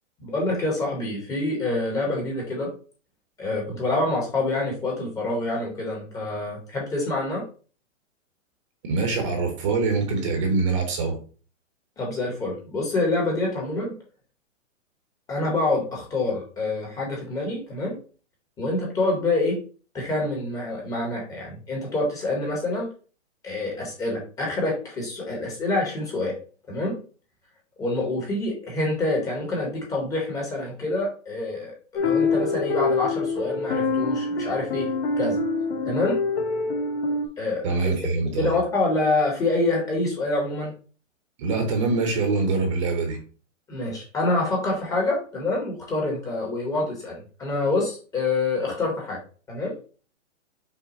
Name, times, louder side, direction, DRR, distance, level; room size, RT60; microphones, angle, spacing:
voice 1, 0.2-2.7 3.4-7.4 12.0-13.9 15.3-18.0 18.6-19.6 19.9-22.9 23.4-26.4 26.7-27.0 27.8-34.9 35.2-35.4 35.8-36.2 37.4-37.9 38.4-40.7 43.7-49.2 49.5-49.7, left 2 dB, 10° left, -1 dB, 0.8 m, -26 dB
voice 2, 8.9-11.2 37.6-38.6 41.4-43.2, right 3 dB, 25° right, 3 dB, 0.8 m, -24 dB
sound 1, 32.0-37.3, left 3 dB, 50° left, 0.9 m, -25 dB
5.7 x 2.1 x 4.0 m, 0.38 s
hypercardioid pair, 155°, 39 cm